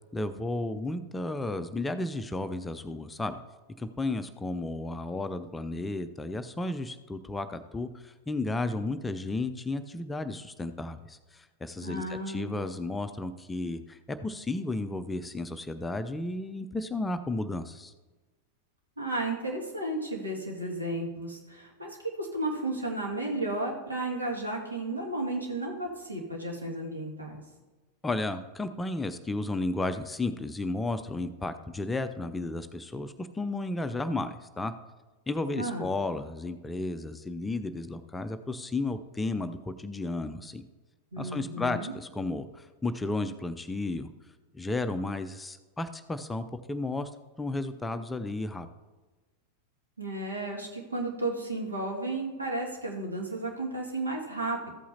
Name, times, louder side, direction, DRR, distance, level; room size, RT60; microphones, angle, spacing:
voice 1, 0.1-3.4 3.8-17.9 28.0-34.7 35.3-40.6 41.2-44.1 44.5-47.1 47.4-48.7, left 2 dB, 10° left, 9 dB, 0.5 m, -33 dB
voice 2, 11.8-12.6 19.0-27.4 35.6-35.9 41.1-41.9 50.0-54.7, right 2 dB, 80° right, -1 dB, 2.0 m, -33 dB
14.5 x 8.4 x 2.8 m, 1.2 s
figure-of-eight pair, 90°, 0 cm